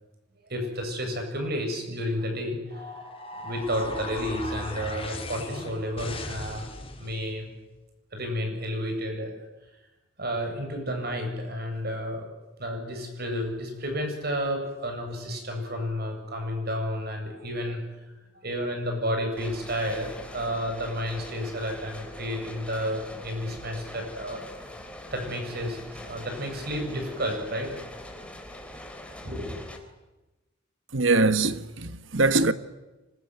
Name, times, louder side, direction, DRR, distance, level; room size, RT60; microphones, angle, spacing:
voice 1, 0.5-2.9 3.4-6.7 7.0-7.5 8.1-9.3 10.2-12.3 12.6-17.8 18.3-24.4 25.1-27.7 28.1-28.2 29.2-29.7, equal, 55° right, 7.7 m, -31 dB
sound 1, 2.7-7.3, left 2 dB, 30° left, 4.7 m, -37 dB
sound 2, 19.4-29.8, left 1 dB, 5° left, 3.4 m, -43 dB
voice 2, 30.9-32.5, right 3 dB, 75° right, 1.4 m, -22 dB
25.5 x 21.5 x 9.5 m
head